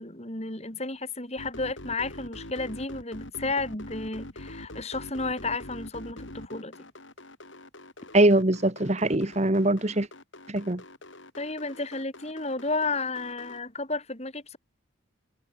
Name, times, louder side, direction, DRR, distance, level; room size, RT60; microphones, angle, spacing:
voice 1, 0.0-6.8 11.4-14.6, left 3 dB, 30° left, 3.9 m, -32 dB
sound 1, 1.4-13.6, left 1 dB, 65° left, 5.6 m, -44 dB
voice 2, 8.1-10.1 10.5-10.8, right 1 dB, 35° right, 1.3 m, -22 dB
head